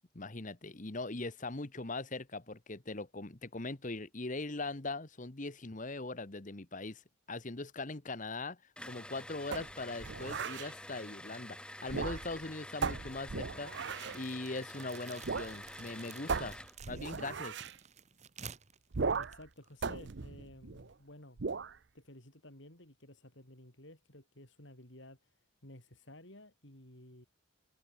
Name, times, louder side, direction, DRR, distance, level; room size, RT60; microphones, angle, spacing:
voice 1, 0.1-7.0 7.3-8.6 8.8-13.7 14.1-16.6 16.9-17.6, left 2 dB, 35° left, 1.2 m, -41 dB
sound 1, 8.8-16.8, left 1 dB, 5° left, 5.3 m, -48 dB
sound 2, 9.5-10.7 11.8-12.4 12.8-14.2 15.2-15.5 15.8-15.9 16.3-17.7 18.9-19.5 19.8-20.9 21.4-21.8, right 4 dB, 55° right, 0.7 m, -37 dB
sound 3, 13.9-20.0, right 6 dB, 35° right, 1.3 m, -53 dB
voice 2, 19.2-21.4 21.9-25.3 25.6-27.3, left 1 dB, 55° left, 5.0 m, -54 dB
head